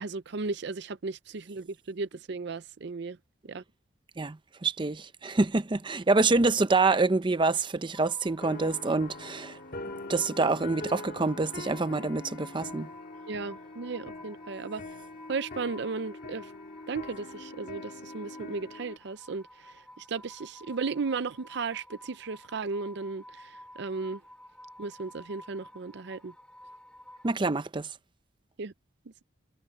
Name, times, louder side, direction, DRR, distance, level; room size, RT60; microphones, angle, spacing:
voice 1, 0.0-3.2 3.5-3.6 13.3-14.8 15.3-16.5 16.9-24.2 24.8-26.3 28.6-28.7, right 4 dB, 65° right, 0.6 m, -35 dB
voice 2, 4.2-9.6 10.1-12.9 27.2-27.9, right 3 dB, 25° right, 0.6 m, -26 dB
sound 1, 7.9-27.3, left 1 dB, 5° left, 2.1 m, -52 dB
sound 2, 8.4-19.0, left 2 dB, 55° left, 1.8 m, -43 dB
head